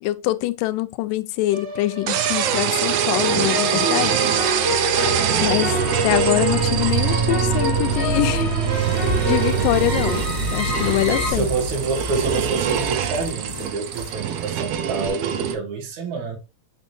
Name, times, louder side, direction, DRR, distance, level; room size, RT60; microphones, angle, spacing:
voice 1, 0.0-4.2 5.4-8.5 9.0-11.5, left 16 dB, 85° left, 2.2 m, -24 dB
sound 1, 1.5-11.3, right 3 dB, 25° right, 1.6 m, -24 dB
sound 2, 2.1-15.5, right 9 dB, 80° right, 1.4 m, -25 dB
voice 2, 5.0-5.4 11.1-16.4, right 4 dB, 60° right, 3.2 m, -27 dB
sound 3, 8.6-15.1, left 2 dB, 5° right, 2.4 m, -31 dB
7.7 x 5.1 x 2.6 m
omnidirectional pair, 3.9 m